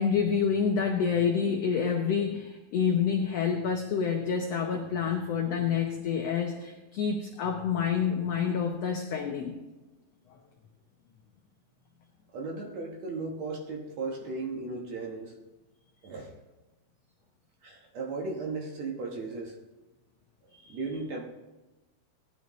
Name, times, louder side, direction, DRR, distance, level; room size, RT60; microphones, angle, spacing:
voice 1, 0.0-9.6 20.5-20.7, left 6 dB, 90° left, 3 dB, 1.4 m, -28 dB
voice 2, 12.3-15.3 16.0-16.3 17.6-19.5 20.7-21.2, right 3 dB, 60° right, 0 dB, 2.1 m, -36 dB
17.0 x 11.0 x 3.1 m, 1.1 s
omnidirectional pair, 4.2 m